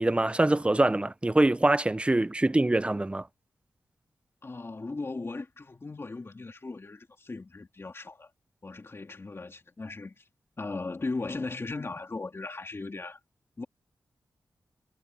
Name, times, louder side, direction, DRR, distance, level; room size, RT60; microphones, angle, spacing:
voice 1, 0.0-3.2, right 2 dB, 15° right, 0.7 m, -24 dB
voice 2, 4.4-8.3 8.6-10.3 10.6-13.2 13.6-13.7, left 3 dB, 40° left, 2.3 m, -37 dB
cardioid pair, 70°, 7 cm